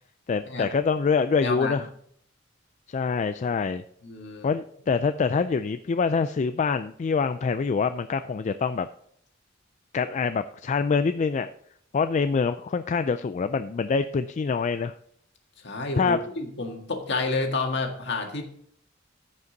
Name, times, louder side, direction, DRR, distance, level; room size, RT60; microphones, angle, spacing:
voice 1, 0.3-1.9 2.9-3.8 4.4-8.9 9.9-11.5 11.9-14.9 16.0-16.2, left 5 dB, 35° left, 10 dB, 0.3 m, -25 dB
voice 2, 1.4-1.9 4.0-4.5 15.6-18.4, left 3 dB, 60° left, 2 dB, 1.8 m, -29 dB
15.0 x 5.4 x 3.9 m, 0.66 s
head